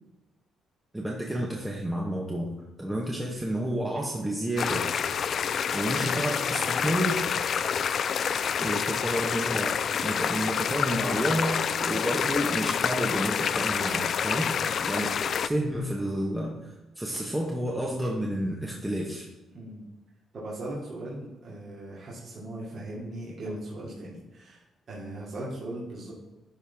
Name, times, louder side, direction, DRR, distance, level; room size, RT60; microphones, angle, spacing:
voice 1, 0.9-2.5 2.8-4.9 5.7-7.2 8.6-14.5 14.9-19.3, right 1 dB, 10° right, -2 dB, 1.1 m, -30 dB
sound 1, 4.6-15.5, left 7 dB, 55° left, 0.3 m, -28 dB
voice 2, 14.4-14.7 19.5-19.8 20.3-26.1, right 1 dB, 50° right, -6 dB, 2.4 m, -39 dB
11.5 x 4.2 x 3.5 m, 1.0 s
cardioid pair, 90°, 0 cm